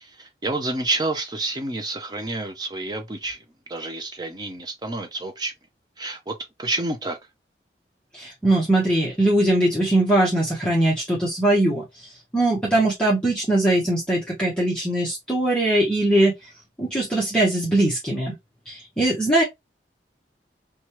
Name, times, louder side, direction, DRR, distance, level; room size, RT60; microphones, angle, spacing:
voice 1, 0.0-3.4 3.7-5.5 6.0-7.2, right 2 dB, 25° right, 0.5 m, -29 dB
voice 2, 8.1-11.8 12.3-16.3 16.8-18.3 18.7-19.4, right 1 dB, 5° left, 0.9 m, -21 dB
3.0 x 2.3 x 2.8 m
head